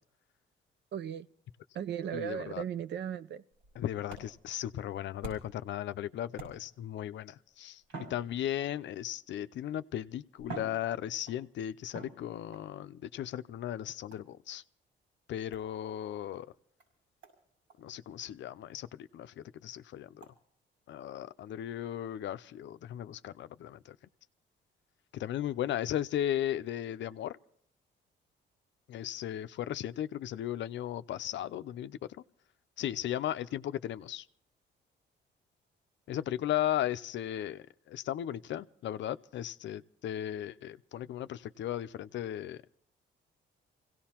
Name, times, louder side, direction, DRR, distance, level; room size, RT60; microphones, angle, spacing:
voice 1, 0.9-1.3 1.7-3.4, right 9 dB, 60° right, 14 dB, 0.6 m, -36 dB
voice 2, 2.1-2.6 3.8-7.8 8.1-14.6 15.3-16.5 17.8-20.2 20.9-24.0 25.2-27.4 28.9-32.0 32.8-34.3 36.1-42.6, left 11 dB, 65° left, 12 dB, 0.5 m, -36 dB
sound 1, 3.5-5.7 6.3-6.9 7.8-8.9 9.8-9.9 10.4-11.5 11.9-12.7 14.1-14.4 15.5-15.7 16.3-16.4 16.8-16.9 17.2-17.4 17.7-17.8 18.2-18.3 18.7-18.8 19.2-19.3 20.2-20.3, right 3 dB, 85° right, 5.9 m, -47 dB
26.5 x 17.0 x 2.9 m, 0.65 s
cardioid pair, 90°, 20 cm